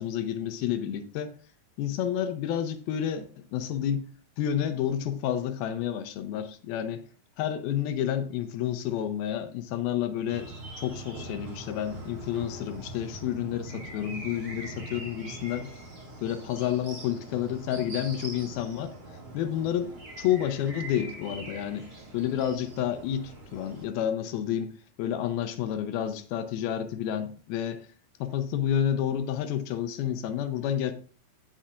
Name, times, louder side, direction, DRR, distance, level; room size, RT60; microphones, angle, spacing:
voice 1, 0.0-1.3 1.8-4.1 4.4-7.0 7.4-15.7 16.2-18.9 19.3-21.9 22.1-27.8 28.2-30.9, left 10 dB, 85° left, 2.5 m, -30 dB
sound 1, 10.3-23.9, right 1 dB, 30° right, 2.3 m, -42 dB
16.0 x 5.5 x 2.4 m
omnidirectional pair, 4.5 m